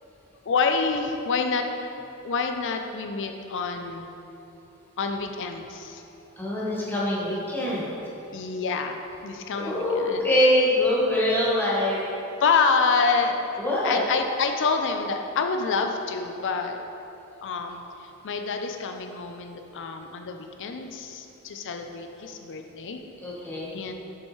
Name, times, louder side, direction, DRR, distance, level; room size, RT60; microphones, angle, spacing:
voice 1, 0.5-1.6 2.2-4.1 5.0-6.0 6.6-6.9 8.3-10.3 12.4-13.4 13.8-16.8 17.4-17.8 18.2-23.0 23.7-23.9, left 4 dB, 60° left, 5 dB, 0.5 m, -27 dB
voice 2, 6.4-7.9 9.5-12.0 13.6-14.0 23.2-23.7, left 1 dB, 10° left, -7 dB, 1.2 m, -24 dB
6.8 x 5.4 x 3.2 m, 3.0 s
head